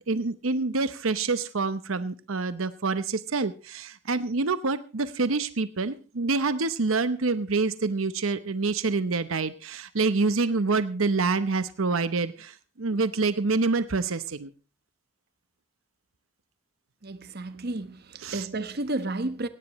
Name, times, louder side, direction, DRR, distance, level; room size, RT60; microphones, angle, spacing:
voice 1, 0.1-14.5 18.2-18.4, right 3 dB, 85° right, 0.9 m, -27 dB
voice 2, 17.0-19.5, right 2 dB, 50° right, 1.1 m, -32 dB
17.5 x 17.0 x 3.1 m
head